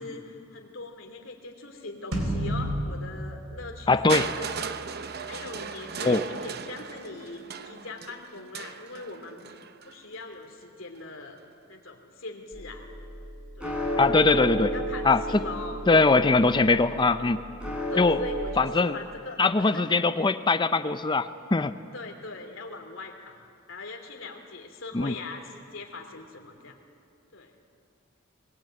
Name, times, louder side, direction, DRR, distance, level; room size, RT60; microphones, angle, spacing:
voice 1, 0.0-4.6 5.2-9.5 9.8-11.4 11.7-12.8 13.6-13.8 14.7-15.8 17.9-20.0 21.9-23.4 23.7-26.8 27.3-27.5, left 3 dB, 80° left, 3 dB, 2.9 m, -41 dB
sound 1, 2.1-4.7, equal, 85° right, 3.7 m, -31 dB
voice 2, 3.9-4.3 6.0-6.2 14.0-14.7 15.0-15.2 15.9-17.4 18.0-18.2 18.6-19.0 19.4-21.8 24.9-25.2, left 3 dB, 25° left, 12 dB, 0.6 m, -21 dB
Crushing, 4.1-10.0 11.0-11.1, right 6 dB, 55° right, 0.8 m, -36 dB
sound 2, 12.5-18.4, right 1 dB, 5° right, 4.5 m, -33 dB
22.0 x 19.0 x 8.9 m, 2.4 s
head